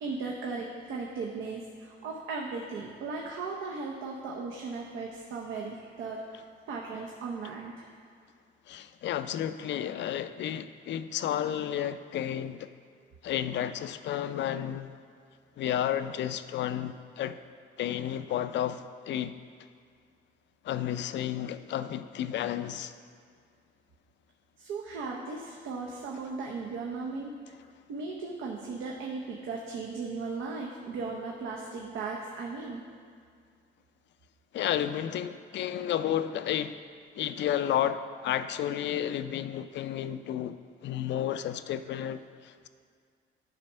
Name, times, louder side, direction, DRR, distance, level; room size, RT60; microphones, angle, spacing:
voice 1, 0.0-7.9 24.6-27.3 27.9-32.8, right 4 dB, 85° right, -1 dB, 0.7 m, -37 dB
voice 2, 8.7-12.7 13.2-15.0 15.6-17.4 17.8-19.3 20.6-22.9 34.5-36.8 37.2-42.7, left 10 dB, 65° left, 12 dB, 0.4 m, -32 dB
10.0 x 3.4 x 5.5 m, 2.1 s
cardioid pair, 90°, 20 cm